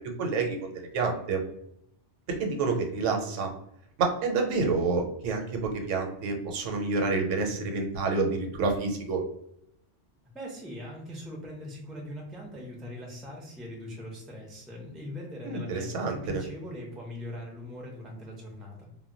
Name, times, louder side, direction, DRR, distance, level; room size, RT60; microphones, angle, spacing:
voice 1, 0.2-1.4 2.3-3.5 4.0-9.2 15.4-16.4, right 4 dB, 85° right, 3 dB, 0.9 m, -28 dB
voice 2, 10.3-18.9, left 1 dB, ahead, -1 dB, 0.3 m, -41 dB
2.1 x 2.1 x 3.7 m, 0.75 s
omnidirectional pair, 1.3 m